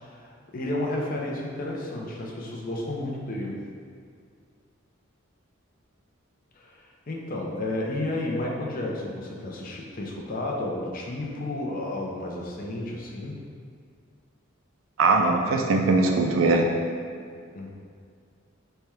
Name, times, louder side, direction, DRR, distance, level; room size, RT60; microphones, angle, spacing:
voice 1, 0.0-3.6 6.5-13.4 17.5-17.7, left 1 dB, 45° left, -1 dB, 0.5 m, -32 dB
voice 2, 15.0-16.7, right 3 dB, 80° right, 2 dB, 0.4 m, -21 dB
3.3 x 2.3 x 4.3 m, 2.1 s
head